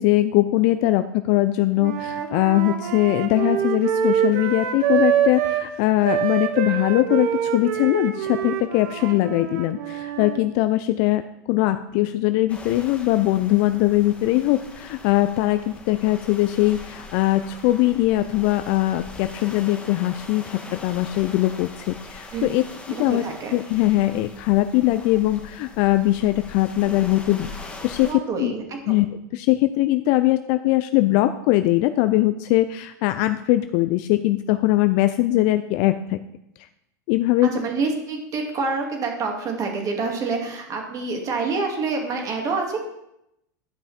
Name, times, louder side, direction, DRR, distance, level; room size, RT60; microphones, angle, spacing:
voice 1, 0.0-11.2 11.5-23.2 23.5-27.5 27.8-28.5 28.9-29.1 29.3-36.2 37.1-37.5, left 16 dB, 55° left, 11 dB, 0.5 m, -21 dB
Wind instrument woodwind instrument, 1.8-5.7 6.0-10.4, right 9 dB, 60° right, 1.1 m, -25 dB
sound 1, 12.5-28.1, left 3 dB, 15° left, 1.7 m, -41 dB
voice 2, 23.0-23.5 28.0-29.0 37.4-42.8, right 4 dB, 35° right, 2 dB, 2.6 m, -27 dB
12.0 x 5.7 x 4.4 m, 0.82 s
hypercardioid pair, 110°, 10 cm